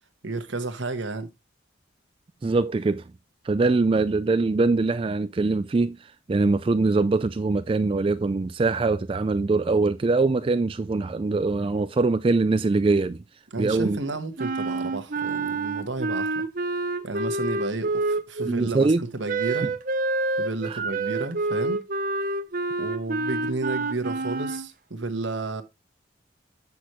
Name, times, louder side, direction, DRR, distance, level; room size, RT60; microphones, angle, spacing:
voice 1, 0.2-1.3 13.5-16.4 17.0-19.7 20.4-21.8 22.8-25.6, right 3 dB, 80° right, 1.3 m, -32 dB
voice 2, 2.4-3.0 3.4-13.2 13.6-14.0 18.4-19.0 20.7-20.8, right 3 dB, 30° right, 0.3 m, -23 dB
Wind instrument woodwind instrument, 14.4-18.5 19.3-24.7, right 3 dB, 45° right, 0.7 m, -28 dB
8.2 x 6.1 x 3.0 m
head